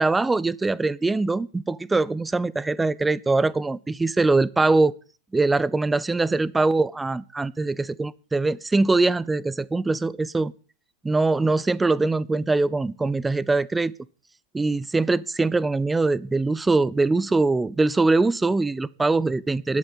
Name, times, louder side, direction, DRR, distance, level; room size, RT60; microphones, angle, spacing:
voice 1, 0.0-4.9 5.3-10.5 11.0-13.9 14.5-19.8, right 3 dB, 10° right, 0.5 m, -22 dB
11.5 x 8.0 x 8.9 m
figure-of-eight pair, 90°, 0 cm